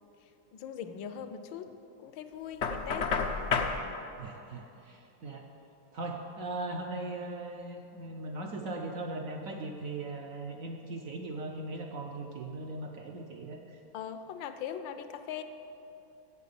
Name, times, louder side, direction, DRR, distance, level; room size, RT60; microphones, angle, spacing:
voice 1, 0.5-1.7 2.0-3.1 13.9-15.4, left 8 dB, 70° left, 9 dB, 1.2 m, -40 dB
Knock, 2.6-3.8, left 5 dB, 90° left, 0.6 m, -29 dB
voice 2, 4.2-5.5 5.9-13.8, right 2 dB, 75° right, 2 dB, 0.7 m, -39 dB
9.2 x 7.4 x 8.5 m, 2.9 s
omnidirectional pair, 2.4 m